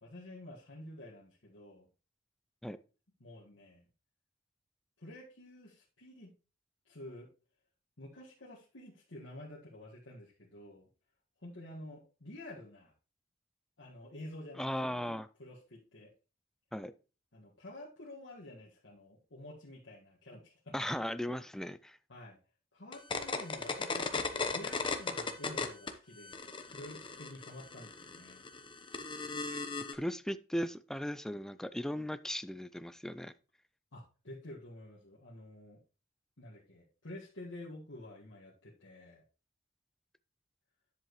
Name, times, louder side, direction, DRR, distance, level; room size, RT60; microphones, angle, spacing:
voice 1, 0.0-1.9 3.2-3.8 5.0-6.4 6.9-7.3 8.0-10.9 11.4-12.9 13.8-15.0 15.4-16.1 17.3-20.7 22.1-22.4 22.7-26.4 26.7-28.4 33.9-35.8 36.4-39.2, left 1 dB, 75° left, -6 dB, 1.8 m, -50 dB
voice 2, 14.6-15.3 16.7-16.9 20.7-22.0 29.5-29.6 29.9-33.3, equal, 5° left, 13 dB, 0.4 m, -37 dB
sound 1, 22.9-25.9 26.2-29.9, left 4 dB, 25° left, 0.9 m, -36 dB
10.0 x 7.5 x 3.1 m, 0.35 s
head